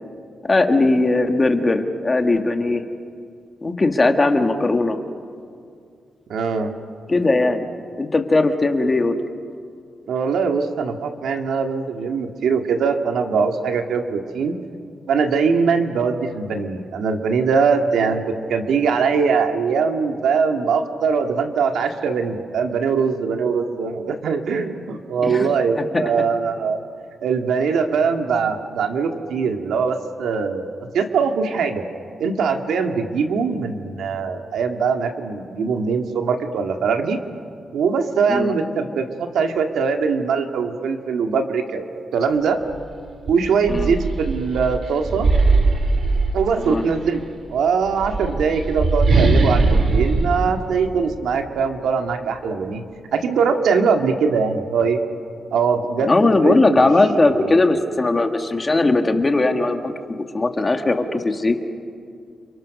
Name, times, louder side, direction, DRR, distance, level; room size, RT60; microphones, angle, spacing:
voice 1, 0.4-2.8 3.6-5.0 7.1-7.6 8.0-9.2 25.2-25.5 25.8-26.3 38.3-38.6 43.7-43.9 46.6-46.8 56.0-61.6, left 2 dB, 20° left, 6 dB, 1.6 m, -19 dB
voice 2, 6.3-6.7 10.1-14.6 15.1-26.8 27.2-31.8 32.2-37.2 37.7-41.9 42.1-42.6 43.3-45.3 46.3-47.2 47.5-52.8 53.1-55.0 55.5-56.8 57.3-57.5, right 5 dB, 85° right, 5 dB, 2.2 m, -21 dB
sound 1, 42.7-42.8 43.2-46.9 47.8-51.5, right 3 dB, 45° right, 2.4 m, -20 dB
30.0 x 28.5 x 6.6 m, 2.3 s
wide cardioid pair, 170°, 0 cm